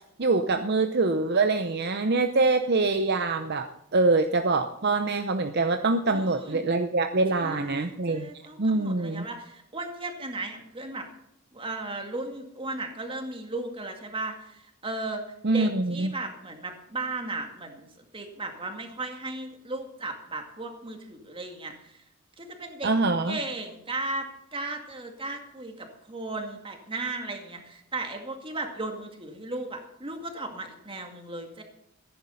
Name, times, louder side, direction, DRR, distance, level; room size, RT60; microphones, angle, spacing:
voice 1, 0.2-8.3 8.6-9.3 15.4-16.1 22.8-23.4, right 3 dB, 50° right, 7 dB, 0.7 m, -24 dB
voice 2, 6.1-6.6 7.4-11.1 11.5-15.2 15.5-22.0 22.4-31.6, right 2 dB, 25° right, 4 dB, 2.2 m, -36 dB
15.0 x 10.5 x 5.6 m, 0.80 s
head